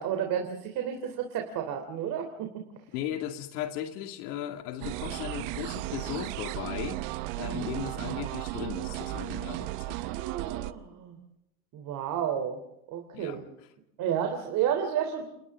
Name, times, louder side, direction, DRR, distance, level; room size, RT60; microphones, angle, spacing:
voice 1, 0.0-2.6 7.4-7.7 10.0-11.2 11.7-12.6 12.9-13.4 14.0-15.2, right 9 dB, 45° right, 4 dB, 3.5 m, -31 dB
voice 2, 2.9-7.0 7.3-10.0 13.1-13.4, left 11 dB, 90° left, 5 dB, 2.5 m, -37 dB
sound 1, 4.8-10.7, right 18 dB, 65° right, 1.1 m, -35 dB
29.5 x 29.5 x 3.7 m, 0.79 s
cardioid pair, 160°, 44 cm